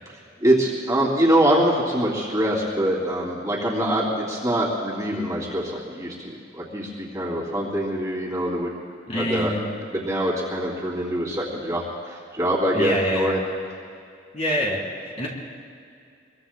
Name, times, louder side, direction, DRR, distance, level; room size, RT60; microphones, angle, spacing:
voice 1, 0.4-8.7 9.1-9.5 9.8-13.4, right 1 dB, 20° right, -4 dB, 2.8 m, -24 dB
voice 2, 9.1-9.7 12.7-13.3 14.3-15.3, left 1 dB, 35° left, -4 dB, 3.6 m, -26 dB
26.5 x 22.5 x 2.3 m, 2.4 s
head